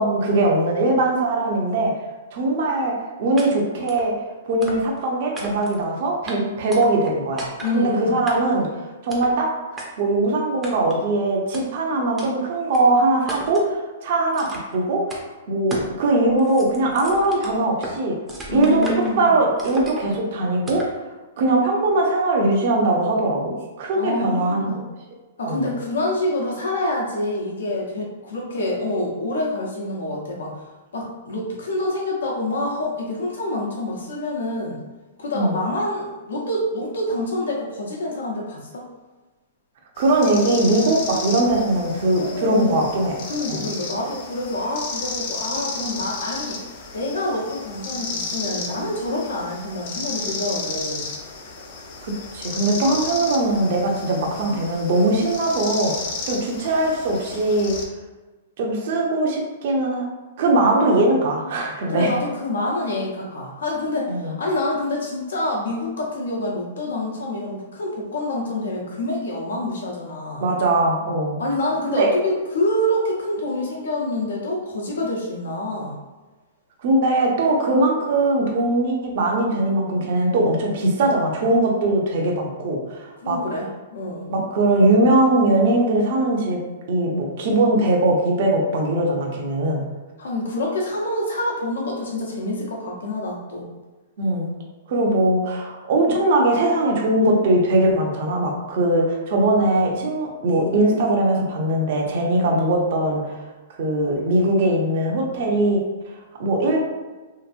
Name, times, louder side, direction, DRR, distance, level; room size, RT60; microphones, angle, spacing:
voice 1, 0.0-1.9 2.3-2.9 3.2-4.1 4.5-7.5 7.7-8.7 9.0-15.0 15.5-18.1 18.5-18.8 19.2-20.8 21.4-24.8 25.5-25.6 35.3-35.5 40.0-43.1 43.5-43.7 52.0-55.9 56.3-57.7 58.6-60.1 60.4-62.2 64.1-64.3 70.4-71.4 71.9-72.1 76.8-83.4 84.3-86.6 86.9-89.8 94.2-94.5 94.9-103.4 103.8-105.8 106.4-106.8, right 2 dB, 55° right, 0 dB, 0.6 m, -20 dB
sound 1, 3.4-3.5 3.9-4.1 4.6-5.0 5.3-5.8 6.3-6.4 6.7-7.1 7.4-7.8 8.3-8.6 9.1-9.3 9.8-9.9 10.6-11.0 11.5-11.6 12.2-12.3 12.7-12.8 13.3-13.7 14.3-14.8 15.1-15.2 15.7-15.9 16.3-18.0 18.3-19.2 19.6-20.2 20.7-21.0, right 1 dB, 15° right, 0.5 m, -35 dB
voice 2, 7.6-8.2 18.5-19.3 23.9-24.8 25.4-30.6 30.9-34.8 35.2-38.9 42.2-42.8 43.3-46.6 46.9-51.0 61.9-70.4 71.4-76.0 83.2-84.3 90.2-93.7, left 1 dB, 90° left, -2 dB, 0.8 m, -27 dB
sound 2, 40.0-57.9, left 4 dB, 50° left, 0.5 m, -33 dB
2.9 x 2.6 x 2.5 m, 1.2 s
hypercardioid pair, 145°, 0 cm